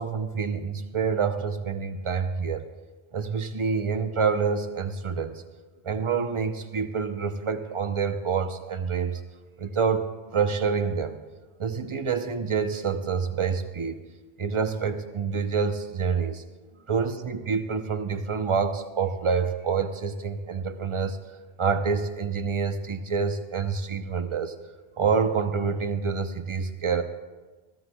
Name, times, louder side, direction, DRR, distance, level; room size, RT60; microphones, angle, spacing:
voice 1, 0.0-2.6 3.1-5.4 5.8-9.2 9.6-10.1 10.3-11.2 11.6-14.0 14.4-16.4 16.9-21.2 21.6-24.5 25.0-27.0, right 5 dB, 35° right, 8 dB, 0.7 m, -27 dB
21.5 x 15.0 x 2.3 m, 1.3 s
omnidirectional pair, 1.1 m